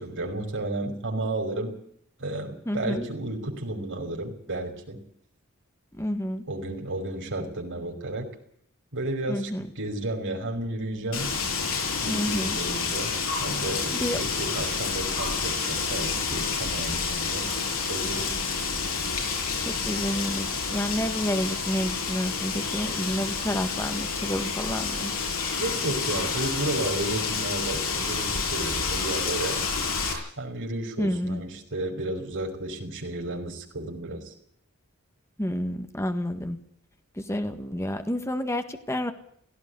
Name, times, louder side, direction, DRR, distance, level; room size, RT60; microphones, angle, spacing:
voice 1, 0.0-1.7 2.2-5.0 6.5-8.3 8.9-11.3 12.0-13.1 13.4-17.5 17.9-18.4 25.6-29.6 30.4-34.3, right 1 dB, 60° right, 2 dB, 5.5 m, -32 dB
voice 2, 2.7-3.1 5.9-6.4 9.3-9.7 12.1-12.6 13.9-14.2 19.6-25.1 31.0-31.4 35.4-36.6 37.2-39.1, equal, 15° left, 7 dB, 1.7 m, -29 dB
Wind, 11.1-30.1, left 5 dB, 70° left, 7.4 m, -29 dB
17.5 x 16.5 x 9.7 m, 0.66 s
head